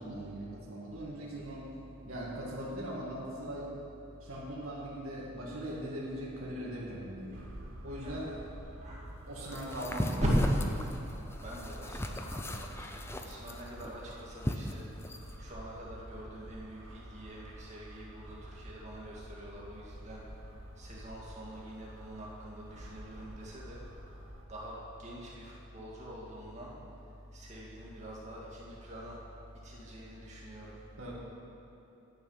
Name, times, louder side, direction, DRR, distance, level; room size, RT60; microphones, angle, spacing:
voice 1, 0.0-1.6 2.1-3.7 4.2-7.4 7.8-8.3 9.3-10.2 31.0-31.1, right 1 dB, 90° right, -5 dB, 2.2 m, -40 dB
sound 1, 7.3-24.4, right 1 dB, 65° right, 1.1 m, -50 dB
voice 2, 7.9-8.4 8.8-9.1 9.4-9.6 10.1-10.3 11.4-14.8 15.4-20.2 20.8-23.8 24.5-26.7 27.3-29.2 29.6-30.7, equal, 35° right, -5 dB, 2.2 m, -43 dB
sound 2, 9.5-15.3, left 1 dB, 10° left, 0.5 m, -36 dB
10.5 x 9.3 x 5.7 m, 3.0 s
head